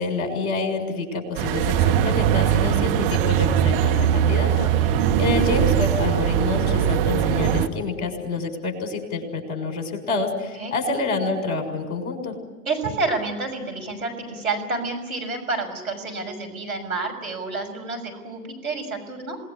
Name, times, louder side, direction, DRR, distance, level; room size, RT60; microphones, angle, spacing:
voice 1, 0.0-4.7 5.2-12.4, left 3 dB, 50° left, 5 dB, 6.5 m, -27 dB
sound 1, 1.4-7.7, right 10 dB, 40° right, 1.6 m, -20 dB
voice 2, 12.7-19.4, right 3 dB, 70° right, 5 dB, 6.5 m, -29 dB
27.5 x 20.0 x 10.0 m, 1.3 s
figure-of-eight pair, 105°, 43 cm